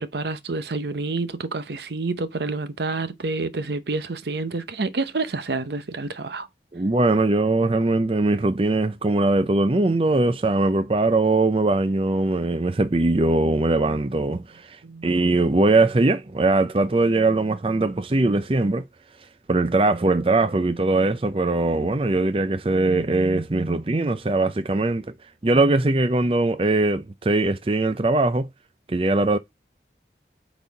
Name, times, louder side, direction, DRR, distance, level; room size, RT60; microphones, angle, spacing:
voice 1, 0.0-6.5 14.8-15.2, right 3 dB, 70° right, 0.8 m, -28 dB
voice 2, 6.7-18.8 19.5-25.1 25.4-28.5 28.9-29.4, right 2 dB, 30° right, 0.5 m, -21 dB
8.3 x 4.1 x 4.0 m
head